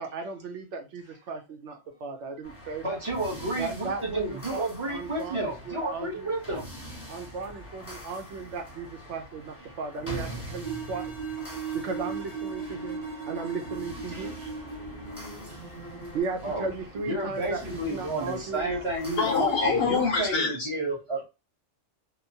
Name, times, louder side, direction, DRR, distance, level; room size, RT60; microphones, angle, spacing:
voice 1, 0.0-3.0 3.6-4.6 4.9-6.3 7.1-11.1 11.7-13.0 13.3-14.5 16.1-18.8, right 4 dB, 75° right, 5 dB, 0.9 m, -36 dB
sound 1, 2.4-20.3, right 1 dB, 15° left, 0.8 m, -44 dB
voice 2, 2.8-6.7 14.1-14.3 15.5-15.6 16.4-16.7 16.9-21.2, right 1 dB, 30° right, -2 dB, 0.8 m, -31 dB
sound 2, 10.6-16.2, right 5 dB, 60° right, 1.4 m, -37 dB
voice 3, 19.2-20.7, left 5 dB, 60° left, 3 dB, 0.7 m, -25 dB
2.9 x 2.0 x 2.6 m, 0.27 s
omnidirectional pair, 1.3 m